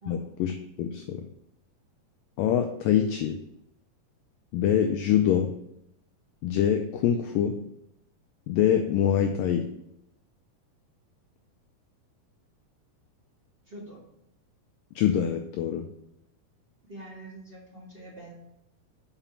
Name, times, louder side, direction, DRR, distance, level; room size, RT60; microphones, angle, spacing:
voice 1, 0.1-1.3 2.4-3.4 4.5-5.5 6.4-7.6 8.5-9.7 15.0-15.9, left 9 dB, 90° left, 5 dB, 1.9 m, -25 dB
voice 2, 13.7-14.0 16.9-18.3, right 1 dB, 30° right, -4 dB, 0.9 m, -44 dB
5.9 x 5.7 x 7.0 m, 0.80 s
omnidirectional pair, 4.6 m